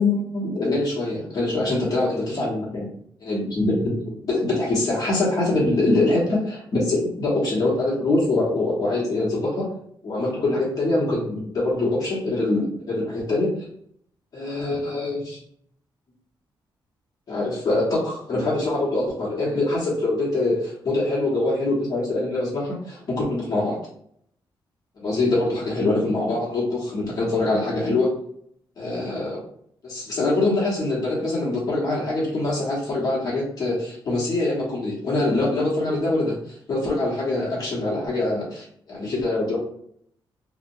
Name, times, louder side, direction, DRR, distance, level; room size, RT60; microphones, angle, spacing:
voice 1, 0.0-2.9 3.2-9.8 10.0-13.7 14.3-15.4 17.3-23.9 25.0-28.1 28.8-29.4 29.8-36.3 36.7-39.6, left 2 dB, 45° left, -6 dB, 1.2 m, -24 dB
2.8 x 2.4 x 2.6 m, 0.67 s
wide cardioid pair, 145°, 9 cm